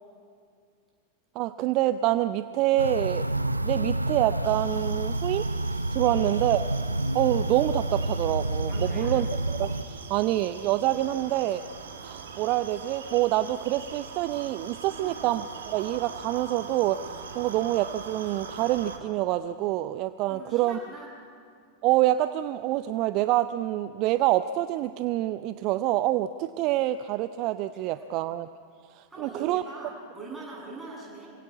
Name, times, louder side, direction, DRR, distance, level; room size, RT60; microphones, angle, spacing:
voice 1, 1.4-3.3 3.6-5.5 5.9-6.6 7.1-11.6 12.0-20.8 21.8-28.5 28.9-29.6, right 14 dB, 40° right, 14 dB, 0.5 m, -26 dB
sound 1, 2.8-9.8, right 2 dB, 85° right, 0.6 m, -29 dB
sound 2, 4.4-19.0, right 5 dB, 65° right, 2.0 m, -42 dB
voice 2, 6.0-6.3 8.7-9.1 14.9-15.2 20.3-21.1 27.7-28.1 29.1-31.3, right 3 dB, 10° right, -4 dB, 7.6 m, -42 dB
26.0 x 17.0 x 8.5 m, 2.2 s
figure-of-eight pair, 90°, 0 cm